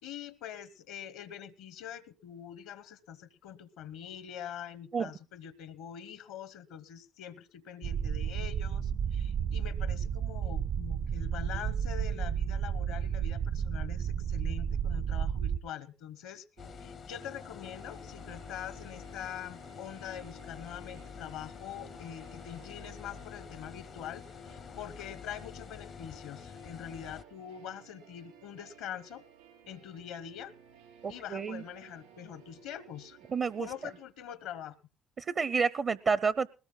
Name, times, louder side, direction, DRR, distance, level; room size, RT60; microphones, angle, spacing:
voice 1, 0.0-16.4 16.8-29.2 29.7-30.5 31.1-33.2 33.6-34.8, left 9 dB, 75° left, 14 dB, 1.0 m, -44 dB
sound 1, 7.8-15.6, right 8 dB, 65° right, 1.1 m, -32 dB
sound 2, 16.6-27.2, left 7 dB, 55° left, 0.6 m, -47 dB
sound 3, 16.6-34.0, right 8 dB, 85° right, 5.3 m, -57 dB
voice 2, 31.0-31.6 33.3-33.7 35.2-36.5, right 5 dB, 45° right, 17 dB, 0.6 m, -29 dB
20.5 x 18.0 x 2.3 m, 0.32 s
hypercardioid pair, 55°, 0 cm